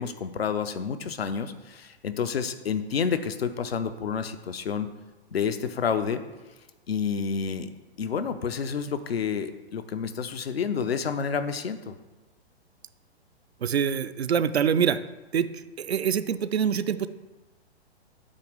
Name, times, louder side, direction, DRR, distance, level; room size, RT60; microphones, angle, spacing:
voice 1, 0.0-4.9 5.3-6.2 6.9-7.7 8.0-11.9, left 6 dB, 65° left, 9 dB, 0.7 m, -29 dB
voice 2, 13.6-15.0 15.3-15.5 15.8-17.1, right 7 dB, 70° right, 12 dB, 0.5 m, -25 dB
8.3 x 2.9 x 6.3 m, 1.1 s
figure-of-eight pair, 115°, 33 cm